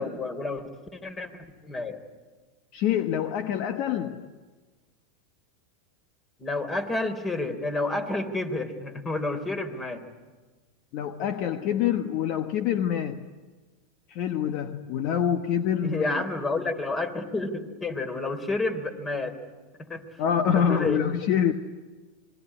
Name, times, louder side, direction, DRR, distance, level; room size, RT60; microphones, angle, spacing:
voice 1, 0.0-2.0 6.4-10.0 15.8-19.4 19.8-20.0 20.5-21.0, left 2 dB, 20° left, 9 dB, 3.6 m, -30 dB
voice 2, 2.7-4.3 10.9-13.3 14.1-16.2 20.2-21.5, left 9 dB, 55° left, 9 dB, 1.2 m, -26 dB
26.5 x 22.0 x 9.9 m, 1.3 s
hypercardioid pair, 105°, 0 cm